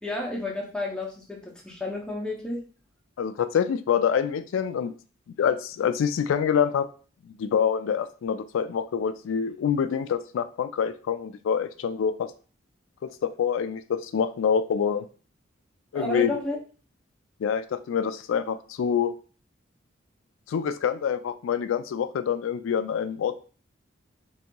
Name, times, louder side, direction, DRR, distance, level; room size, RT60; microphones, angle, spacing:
voice 1, 0.0-2.7 15.9-16.6, left 2 dB, 5° left, -1 dB, 0.5 m, -31 dB
voice 2, 3.2-4.9 5.4-6.9 7.3-12.3 13.0-15.1 15.9-16.3 17.4-19.1 20.5-23.3, left 7 dB, 80° left, 11 dB, 0.3 m, -26 dB
3.8 x 2.7 x 2.2 m, 0.38 s
head